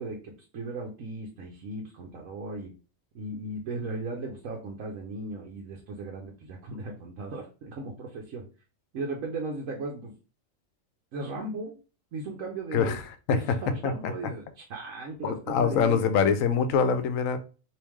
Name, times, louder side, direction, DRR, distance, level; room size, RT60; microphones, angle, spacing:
voice 1, 0.0-2.7 3.1-8.5 8.9-10.1 11.1-11.8 12.1-13.0 13.3-16.0, right 2 dB, 75° right, 1.1 m, -36 dB
voice 2, 12.7-13.0 13.3-13.6 13.8-14.1 15.2-17.4, left 6 dB, 80° left, 1.0 m, -24 dB
3.5 x 2.9 x 3.0 m
omnidirectional pair, 1.4 m